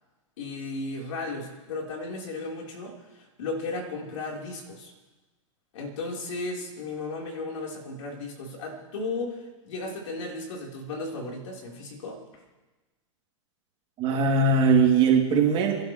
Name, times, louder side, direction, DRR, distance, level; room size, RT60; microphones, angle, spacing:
voice 1, 0.4-4.9 5.7-12.2, left 3 dB, 65° left, 0 dB, 4.1 m, -35 dB
voice 2, 14.0-15.8, right 4 dB, 35° right, 0 dB, 2.7 m, -20 dB
27.5 x 12.0 x 3.2 m, 1.2 s
hypercardioid pair, 125°, 17 cm